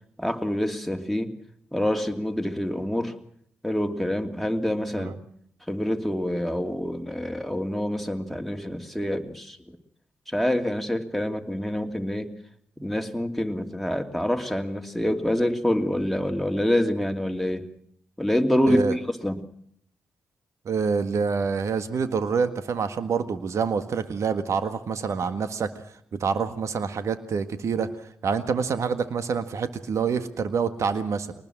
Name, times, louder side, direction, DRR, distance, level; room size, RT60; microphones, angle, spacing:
voice 1, 0.2-1.3 1.7-3.2 3.6-5.2 5.7-9.8 10.3-12.3 12.8-17.7 18.2-19.4, equal, ahead, 4 dB, 2.8 m, -26 dB
voice 2, 20.7-25.7 26.1-27.9 28.2-31.3, right 5 dB, 65° right, 10 dB, 1.7 m, -26 dB
23.0 x 20.0 x 6.1 m, 0.67 s
hypercardioid pair, 40°, 6 cm